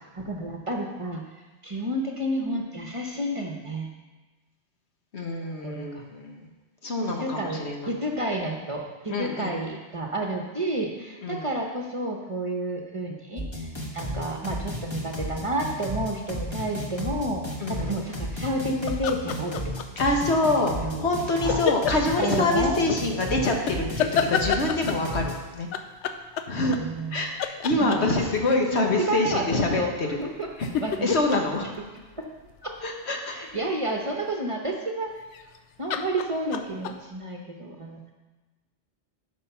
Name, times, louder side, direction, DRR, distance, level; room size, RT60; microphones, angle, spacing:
voice 1, 0.1-1.2 1.6-3.9 5.6-6.1 7.1-17.4 17.7-19.6 20.8-21.6 22.2-22.8 26.8-27.3 27.8-28.0 28.7-30.5 30.8-31.4 32.2-32.3 32.6-32.8 33.3-35.1 35.8-38.0, right 1 dB, 30° right, 1 dB, 1.0 m, -30 dB
voice 2, 5.1-6.4 6.8-7.9 9.1-9.5 11.2-11.5 17.6-17.9 20.0-20.7 21.0-25.7 26.5-26.8 27.1-30.2 30.6-30.7 31.0-31.7 32.8-33.4, left 2 dB, 70° left, 2 dB, 1.5 m, -26 dB
sound 1, 13.4-25.4, equal, 25° left, 1.4 m, -33 dB
sound 2, 18.9-20.1 21.5-22.3 23.7-25.1 25.7-27.1 27.4-28.3 30.1-32.8 35.2-35.6 35.9-36.9, left 8 dB, 90° left, 0.9 m, -28 dB
11.0 x 5.4 x 5.8 m, 1.2 s
omnidirectional pair, 1.2 m